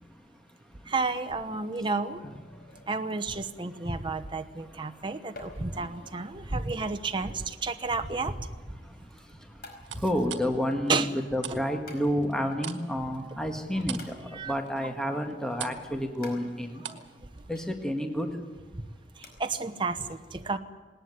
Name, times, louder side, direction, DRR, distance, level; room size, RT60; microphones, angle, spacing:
voice 1, 0.9-2.2 2.9-8.5 10.9-11.1 11.5-11.6 14.3-14.5 16.8-17.0 18.7-18.8 19.2-20.6, right 3 dB, 25° right, 7 dB, 1.0 m, -31 dB
sound 1, 1.1-3.4 5.3-8.3 9.6-11.1 11.9-13.0 14.0-14.9 16.2-18.2 18.5-18.6 19.2-19.3, left 2 dB, 55° left, 4.8 m, -53 dB
voice 2, 2.2-2.6 5.7-5.9 10.0-16.8 17.5-18.4, equal, 5° left, 4 dB, 1.8 m, -30 dB
sound 2, 5.5-7.2 7.6-8.1 9.9-11.6 11.9-17.1 17.4-17.5, right 10 dB, 80° right, 1.7 m, -43 dB
19.0 x 19.0 x 9.6 m, 1.4 s
head